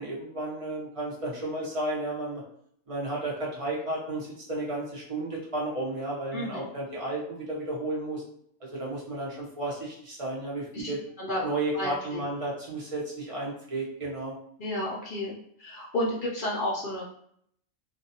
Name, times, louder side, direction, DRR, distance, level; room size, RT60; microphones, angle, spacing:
voice 1, 0.0-2.4 2.9-8.2 8.7-11.0 11.4-14.3, right 2 dB, 30° right, -5 dB, 0.7 m, -33 dB
voice 2, 6.3-6.7 10.7-10.9 11.2-11.4 11.7-12.2 14.6-15.3 15.6-17.0, left 1 dB, 55° left, -4 dB, 0.6 m, -31 dB
2.4 x 2.3 x 2.7 m, 0.68 s
omnidirectional pair, 1.3 m